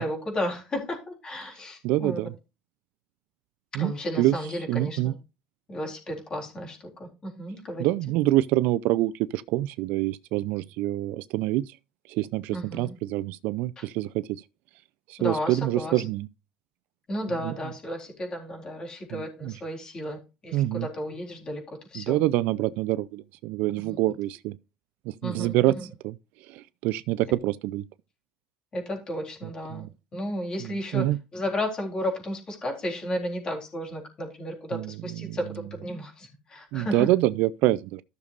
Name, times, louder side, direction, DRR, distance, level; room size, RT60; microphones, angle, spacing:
voice 1, 0.0-2.2 3.7-5.2 5.7-7.9 12.5-12.9 13.8-13.9 15.2-16.0 17.1-22.2 23.8-24.0 25.2-25.9 28.7-29.9 30.1-37.1, equal, 30° left, 3.7 m, -33 dB
voice 2, 1.8-2.3 3.7-4.4 4.7-5.1 7.8-11.7 12.1-14.4 15.1-16.3 17.4-17.5 19.1-19.5 20.5-20.9 22.0-24.6 25.1-25.8 26.0-26.1 26.5-27.8 29.7-29.9 30.6-31.2 34.7-34.9 35.2-35.4 36.7-38.0, right 16 dB, 70° right, 0.5 m, -26 dB
14.0 x 6.7 x 2.5 m
cardioid pair, 120°, 3 cm